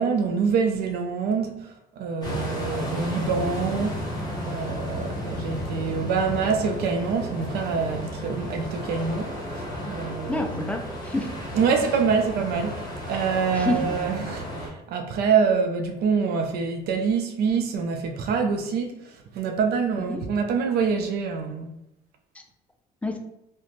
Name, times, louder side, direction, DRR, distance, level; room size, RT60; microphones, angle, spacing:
voice 1, 0.0-1.5 2.0-4.0 4.5-9.3 9.9-10.7 11.5-14.5 14.9-18.9 19.4-21.7, right 5 dB, 70° right, 0.4 m, -25 dB
sound 1, 2.2-14.7, equal, 25° left, 0.9 m, -33 dB
voice 2, 10.3-11.3 13.5-13.9 20.1-20.2 23.0-23.2, left 1 dB, 10° left, 0.3 m, -28 dB
2.4 x 2.1 x 3.0 m
cardioid pair, 110°, 17 cm